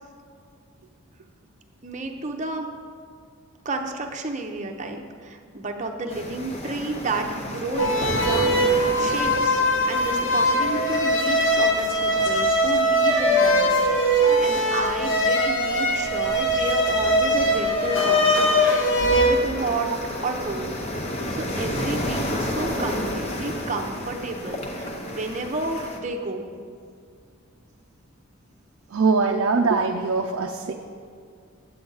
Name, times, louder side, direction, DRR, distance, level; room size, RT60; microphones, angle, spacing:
voice 1, 1.8-2.7 3.6-9.6 9.9-13.7 14.0-19.9 20.2-20.8 21.3-26.5, right 3 dB, 35° right, 3 dB, 0.7 m, -31 dB
sound 1, 6.1-26.0, left 1 dB, 30° left, 0.8 m, -33 dB
sound 2, 7.8-19.4, equal, 55° left, 1.1 m, -21 dB
voice 2, 28.9-30.7, right 4 dB, 65° right, 2 dB, 0.4 m, -22 dB
8.5 x 8.4 x 3.9 m, 2.2 s
head